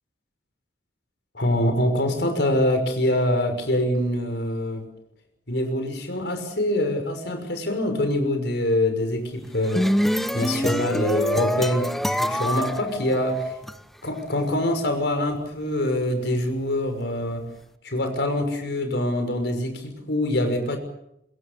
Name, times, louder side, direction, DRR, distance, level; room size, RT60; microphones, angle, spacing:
voice 1, 1.3-4.9 5.5-10.0 10.3-13.5 14.0-17.5 17.8-20.8, left 1 dB, 70° left, 6 dB, 6.1 m, -24 dB
sound 1, 9.4-13.8, equal, ahead, 1.0 m, -25 dB
26.0 x 22.0 x 6.9 m, 0.80 s
head